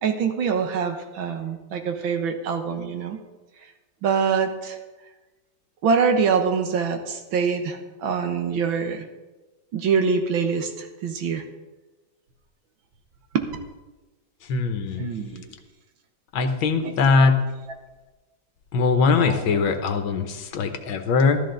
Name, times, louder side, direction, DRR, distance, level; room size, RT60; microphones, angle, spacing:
voice 1, 0.0-3.2 4.0-4.8 5.8-9.1 9.7-11.4 13.3-13.4 15.0-15.5 16.8-16.9 19.2-19.4, right 6 dB, 80° right, 6 dB, 1.9 m, -24 dB
voice 2, 14.5-15.1 16.3-17.4 18.7-21.4, left 4 dB, 80° left, 7 dB, 1.8 m, -21 dB
13.5 x 13.0 x 3.9 m, 1.2 s
omnidirectional pair, 2.1 m